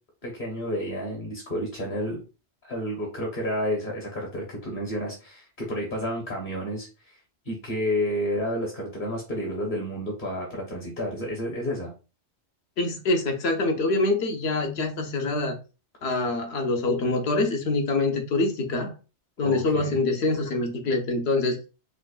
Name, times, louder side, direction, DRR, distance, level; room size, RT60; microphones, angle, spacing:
voice 1, 0.2-2.2 2.6-7.2 7.4-11.9 19.4-20.0, equal, 45° left, 1.2 m, -30 dB
voice 2, 12.8-15.6 16.0-18.9 19.4-21.6, left 2 dB, 70° left, 1.0 m, -25 dB
5.0 x 2.2 x 2.4 m
omnidirectional pair, 1.2 m